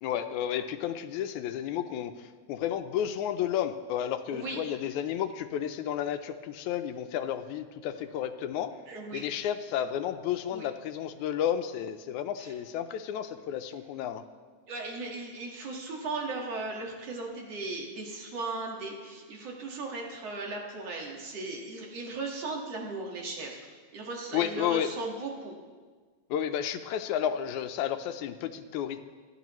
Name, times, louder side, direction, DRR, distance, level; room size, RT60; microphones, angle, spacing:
voice 1, 0.0-8.7 9.1-14.2 24.3-24.9 26.3-29.0, left 10 dB, 90° left, 9 dB, 2.1 m, -32 dB
voice 2, 4.3-4.6 7.9-8.0 8.9-9.2 10.5-10.7 12.4-12.5 14.7-23.7 23.9-25.5, right 3 dB, 60° right, -1 dB, 2.8 m, -37 dB
26.0 x 11.0 x 3.1 m, 1.5 s
omnidirectional pair, 3.3 m